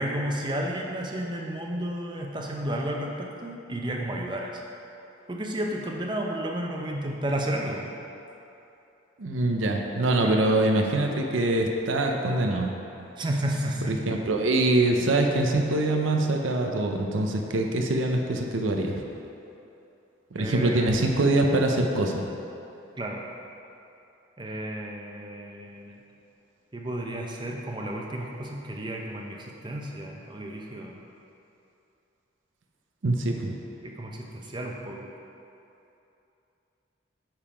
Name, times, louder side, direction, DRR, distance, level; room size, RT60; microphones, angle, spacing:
voice 1, 0.0-4.5 5.3-7.9 10.2-10.3 13.2-14.0 20.4-21.2 23.0-23.2 24.4-26.0 26.7-31.0 33.8-35.1, right 1 dB, 25° right, 0 dB, 0.6 m, -32 dB
voice 2, 9.2-12.7 13.9-19.0 20.3-22.3 33.0-33.6, right 2 dB, 90° right, 2 dB, 0.6 m, -24 dB
8.9 x 3.8 x 5.0 m, 2.8 s
head